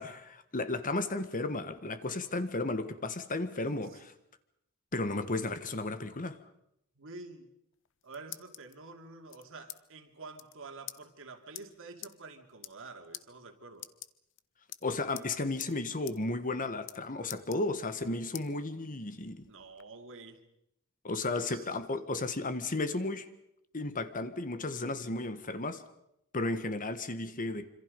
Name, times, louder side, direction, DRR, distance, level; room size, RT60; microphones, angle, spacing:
voice 1, 0.0-4.1 4.9-6.4 14.8-19.5 21.0-23.3 23.7-25.8 26.3-27.7, left 2 dB, 40° left, 1.5 m, -34 dB
voice 2, 6.9-7.5 8.0-13.9 19.5-20.4 21.4-21.7, right 3 dB, 65° right, 2.7 m, -48 dB
sound 1, 7.7-8.7 9.3-9.8 10.1-10.2 10.3-10.5 10.9-11.0 11.5-11.6 12.0-12.1 12.5-12.9 13.1-13.2 13.7-14.4 14.7-15.3 15.6-15.7 16.1-16.2 16.5-17.0 17.3-18.0 18.3-18.5 19.0-19.8, left 14 dB, 60° left, 0.9 m, -45 dB
26.5 x 26.0 x 5.3 m
head